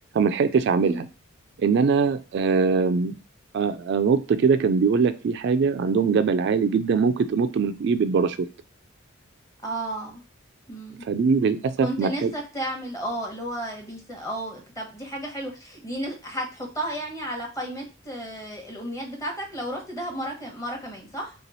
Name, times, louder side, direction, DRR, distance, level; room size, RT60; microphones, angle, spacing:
voice 1, 0.1-1.1 1.6-3.2 3.5-8.4 11.1-12.3, right 5 dB, 55° right, 10 dB, 0.3 m, -22 dB
voice 2, 9.6-10.2 10.7-11.1 11.8-21.3, right 1 dB, 15° left, 1 dB, 1.0 m, -33 dB
3.4 x 3.0 x 4.0 m, 0.34 s
head